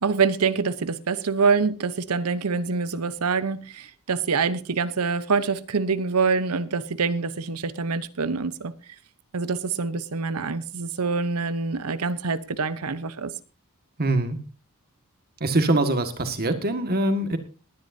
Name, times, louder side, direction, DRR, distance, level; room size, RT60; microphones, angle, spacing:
voice 1, 0.0-8.7 9.3-13.3, right 5 dB, 90° right, 0.9 m, -25 dB
voice 2, 14.0-14.4 15.4-17.4, right 2 dB, 45° right, 1.8 m, -23 dB
19.5 x 10.5 x 2.7 m
head